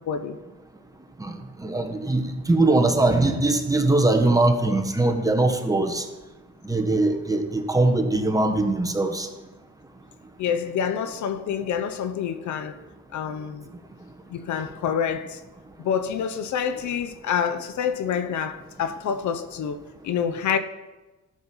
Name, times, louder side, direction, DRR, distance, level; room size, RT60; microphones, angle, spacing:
voice 1, 0.1-0.4 10.4-12.8 13.1-13.7 14.3-15.4 15.8-19.8 20.0-20.6, left 7 dB, 70° left, 0.8 m, -27 dB
voice 2, 1.2-6.0 6.7-9.3, right 2 dB, 10° right, 1.4 m, -21 dB
13.5 x 6.5 x 5.6 m
cardioid pair, 90°, 30 cm